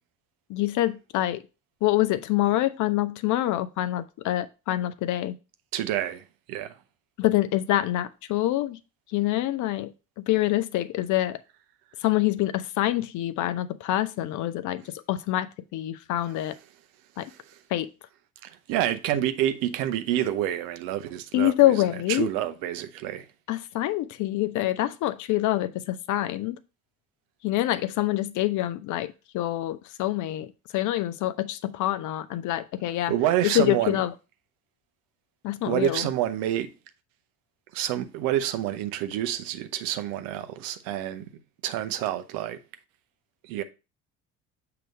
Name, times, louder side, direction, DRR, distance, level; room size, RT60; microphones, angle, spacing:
voice 1, 0.5-1.4 1.8-5.3 7.2-8.8 9.1-9.9 10.3-11.4 12.0-14.8 15.1-16.6 17.2-17.3 17.7-17.9 21.3-22.3 23.5-26.6 27.4-33.1 33.4-34.1 35.4-36.1, left 15 dB, 50° left, 0.6 m, -26 dB
voice 2, 5.7-6.7 17.3-17.6 18.4-23.3 33.1-34.0 35.6-36.7 37.7-41.3 41.6-42.6 43.4-43.6, right 12 dB, 60° right, 0.7 m, -28 dB
7.6 x 2.9 x 5.1 m
figure-of-eight pair, 50°, 40 cm